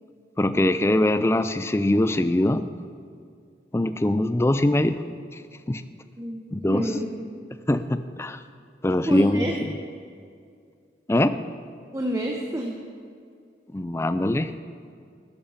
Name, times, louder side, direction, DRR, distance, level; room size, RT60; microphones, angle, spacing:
voice 1, 0.4-2.7 3.7-5.0 5.3-5.4 5.7-5.8 6.5-6.8 7.7-8.4 8.8-9.4 11.1-11.4 13.7-14.6, left 1 dB, 15° left, 12 dB, 0.4 m, -22 dB
voice 2, 6.7-7.3 7.7-7.9 9.1-9.6 11.9-12.9, right 1 dB, 15° right, 1 dB, 0.9 m, -29 dB
13.0 x 10.5 x 5.8 m, 2.3 s
head